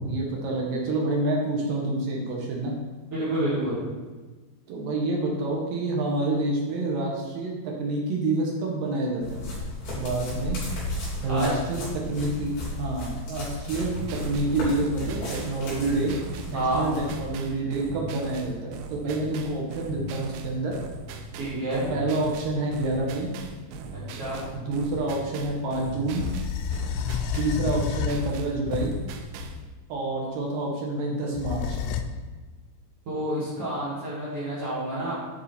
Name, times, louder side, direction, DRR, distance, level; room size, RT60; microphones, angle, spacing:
voice 1, 0.0-2.7 4.7-9.4 10.0-10.6 11.2-13.9 14.2-16.1 16.5-20.7 21.9-23.3 24.5-26.3 27.4-28.9 29.9-31.8, right 2 dB, 70° right, -2 dB, 2.3 m, -28 dB
voice 2, 3.1-3.8 11.3-11.5 16.5-16.9 21.4-21.9 23.9-24.4 33.1-35.1, right 1 dB, 45° right, -8 dB, 2.3 m, -29 dB
sound 1, 9.2-17.3, left 1 dB, 60° left, 4.6 m, -34 dB
sound 2, 13.7-29.6, right 4 dB, 85° right, 2.9 m, -39 dB
sound 3, 26.1-29.8 31.4-32.0, left 7 dB, 85° left, 2.9 m, -30 dB
9.8 x 4.9 x 4.3 m, 1.3 s
omnidirectional pair, 5.3 m